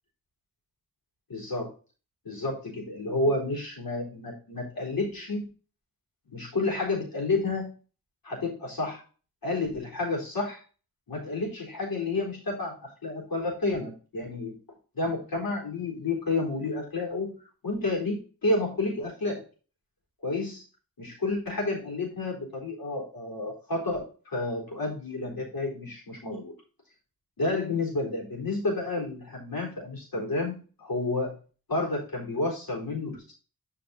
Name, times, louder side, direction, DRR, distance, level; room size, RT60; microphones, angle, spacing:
voice 1, 1.3-1.7 2.3-5.4 6.3-7.7 8.2-9.0 9.4-10.6 11.1-12.7 13.0-14.6 14.9-17.3 17.6-19.4 20.2-20.6 21.0-26.5 27.4-31.3 31.7-33.3, left 2 dB, 75° left, -1 dB, 3.8 m, -30 dB
8.0 x 5.2 x 4.1 m, 0.36 s
cardioid pair, 55°, 36 cm